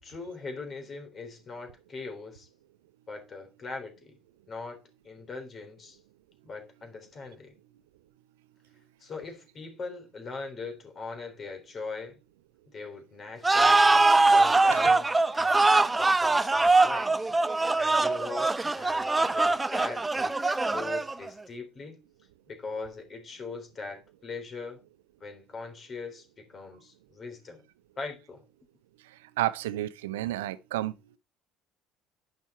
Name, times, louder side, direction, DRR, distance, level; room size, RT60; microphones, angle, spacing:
voice 1, 0.0-2.5 3.1-4.2 4.5-6.0 6.4-7.6 9.0-12.2 12.7-17.3 17.8-22.0 22.5-24.8 25.2-27.6 28.0-28.4, left 4 dB, 40° left, 3.6 m, -41 dB
sound 1, 13.4-21.3, right 3 dB, 15° right, 0.6 m, -23 dB
voice 2, 29.4-30.9, right 15 dB, 90° right, 0.6 m, -31 dB
9.7 x 5.8 x 4.3 m
hypercardioid pair, 75°, 0 cm